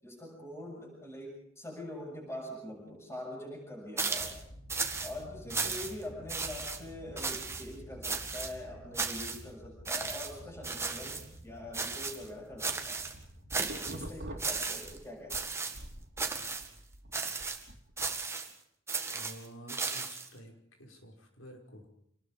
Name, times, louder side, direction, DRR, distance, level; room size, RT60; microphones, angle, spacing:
voice 1, 0.0-4.4 5.0-13.0 13.7-15.5, left 1 dB, 15° left, -2 dB, 7.2 m, -44 dB
sound 1, 4.0-4.4 4.7-5.1 5.5-6.0 6.3-6.8 7.2-7.6 8.0-8.5 8.9-9.4 9.9-10.3 10.6-11.2 11.7-12.3 12.6-13.1 13.5-14.0 14.4-15.0 15.3-15.8 16.2-16.7 17.1-17.6 18.0-18.5 18.9-20.3, right 4 dB, 15° right, 2.0 m, -35 dB
sound 2, 4.2-14.3, equal, 50° left, 3.6 m, -51 dB
sound 3, 12.9-15.4 15.7-18.1, right 1 dB, 55° right, 2.8 m, -45 dB
voice 2, 19.0-20.5 20.8-21.9, equal, 90° left, 2 dB, 5.7 m, -50 dB
27.5 x 20.0 x 5.2 m, 0.71 s
head